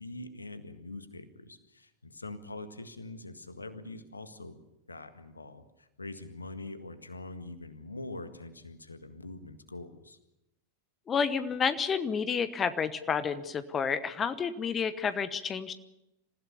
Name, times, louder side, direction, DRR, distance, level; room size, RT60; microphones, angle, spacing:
voice 1, 0.0-4.6 4.9-10.2, left 2 dB, 80° left, 10 dB, 1.7 m, -44 dB
voice 2, 11.1-15.7, left 6 dB, 20° left, 13 dB, 1.0 m, -30 dB
27.0 x 15.5 x 7.1 m, 0.90 s
figure-of-eight pair, 90°, 0 cm